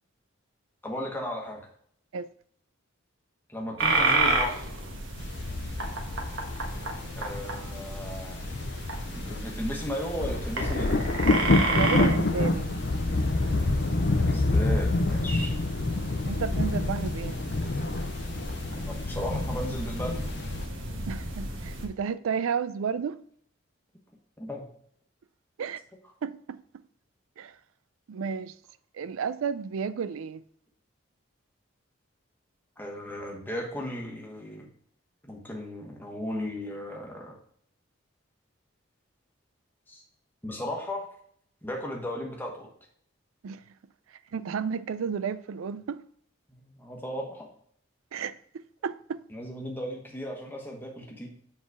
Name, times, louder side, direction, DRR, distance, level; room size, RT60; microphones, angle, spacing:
voice 1, 0.8-1.6 3.5-4.7 7.2-8.4 9.1-10.9 14.2-15.5 18.7-20.3 24.4-24.6 32.8-34.7 35.2-37.3 39.9-40.0 40.4-41.1 41.6-42.7 46.5-47.5 49.3-51.3, equal, 10° left, 1.2 m, -35 dB
sound 1, 3.8-21.9, right 2 dB, 70° right, 1.4 m, -32 dB
sound 2, 5.2-20.7, left 2 dB, 55° left, 0.6 m, -28 dB
voice 2, 11.7-12.7 16.2-17.4 21.1-23.2 25.6-25.8 26.2-26.6 27.4-27.5 28.1-28.5 28.9-30.4 43.4-43.6 44.3-46.0 48.1-49.2, right 6 dB, 85° right, 0.4 m, -32 dB
7.4 x 4.0 x 4.7 m
head